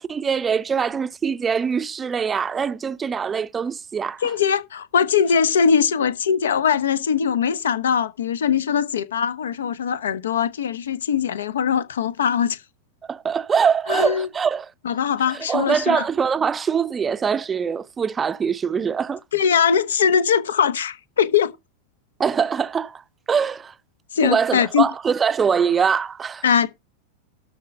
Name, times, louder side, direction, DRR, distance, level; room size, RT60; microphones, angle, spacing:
voice 1, 0.0-4.3 13.1-14.7 15.3-19.2 22.2-23.0 23.3-23.7 24.2-26.4, right 6 dB, 20° right, 0.7 m, -23 dB
voice 2, 4.2-12.6 13.9-14.3 14.8-16.0 19.3-21.5 24.1-24.9 26.4-26.7, left 7 dB, 65° left, 1.2 m, -21 dB
13.0 x 4.4 x 6.9 m
figure-of-eight pair, 90°, 0 cm